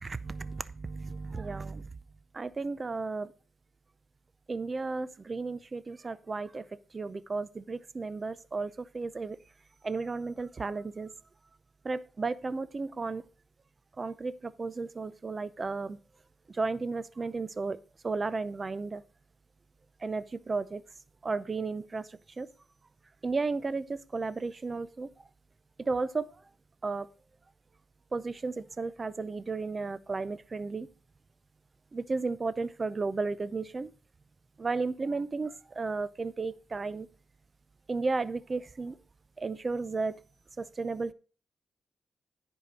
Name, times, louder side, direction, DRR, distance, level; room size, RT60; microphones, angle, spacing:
voice 1, 0.0-1.9 2.3-3.3 4.5-6.6 6.9-9.4 9.8-11.1 11.8-13.2 14.0-16.0 16.5-17.8 18.0-19.0 20.0-20.8 21.2-22.5 23.2-25.1 25.8-26.3 26.8-27.1 28.1-30.9 31.9-33.9 34.6-37.1 37.9-39.0 39.4-40.2 40.6-41.1, right 3 dB, 35° right, 16 dB, 0.6 m, -34 dB
10.0 x 4.7 x 5.3 m, 0.37 s
cardioid pair, 65°, 0 cm